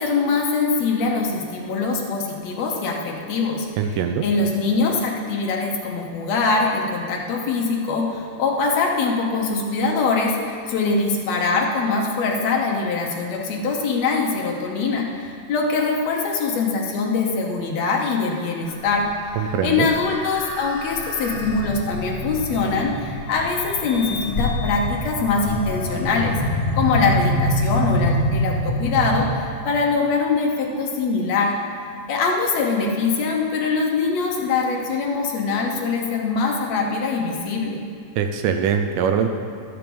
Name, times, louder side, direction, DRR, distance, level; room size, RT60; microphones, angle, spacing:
voice 1, 0.0-3.7 4.2-19.1 19.6-26.4 26.8-31.6 32.1-37.8, left 4 dB, 70° left, 0 dB, 1.7 m, -23 dB
voice 2, 3.8-4.3 19.4-19.9 38.2-39.3, right 7 dB, 80° right, 6 dB, 2.0 m, -22 dB
sound 1, 18.7-29.3, left 1 dB, 50° left, 0.6 m, -26 dB
12.0 x 6.1 x 7.0 m, 2.2 s
omnidirectional pair, 4.1 m